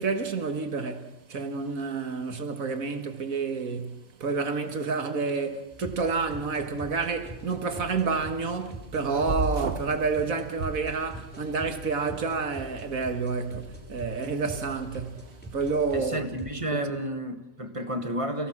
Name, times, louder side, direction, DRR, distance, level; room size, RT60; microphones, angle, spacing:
voice 1, 0.0-15.3 15.5-16.2 16.7-17.0, right 4 dB, 75° right, 2.1 m, -29 dB
sound 1, 5.7-16.5, right 1 dB, 5° left, 6.0 m, -44 dB
sound 2, 9.3-10.0 10.5-11.5, right 3 dB, 45° right, 1.5 m, -32 dB
voice 2, 15.9-18.5, right 1 dB, 25° right, 1.7 m, -31 dB
29.5 x 17.0 x 6.0 m
omnidirectional pair, 1.5 m